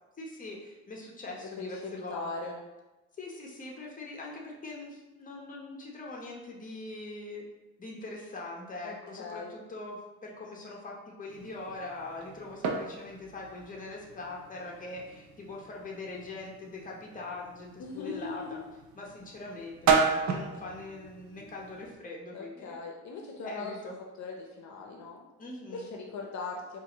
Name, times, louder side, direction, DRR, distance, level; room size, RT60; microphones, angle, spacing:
voice 1, 0.2-2.5 3.2-7.4 7.8-18.4 18.9-22.8 23.4-23.9 25.4-25.9, left 2 dB, 25° left, -2 dB, 0.9 m, -42 dB
voice 2, 1.4-2.6 8.8-9.5 17.8-18.6 22.3-23.7 24.2-25.2 25.7-26.8, left 4 dB, 65° left, 0 dB, 0.6 m, -40 dB
sound 1, 11.3-21.9, right 5 dB, 65° right, 0.6 m, -34 dB
4.4 x 2.6 x 2.9 m, 1.1 s
cardioid pair, 90°, 30 cm